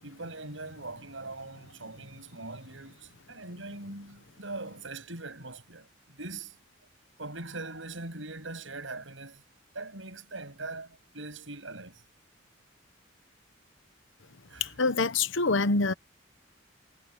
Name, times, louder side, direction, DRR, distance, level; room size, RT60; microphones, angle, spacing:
voice 1, 0.0-6.6 7.2-9.4 9.7-12.0 14.5-14.7, right 2 dB, 75° right, 7.6 m, -41 dB
voice 2, 14.6-15.9, left 3 dB, 75° left, 1.0 m, -25 dB
head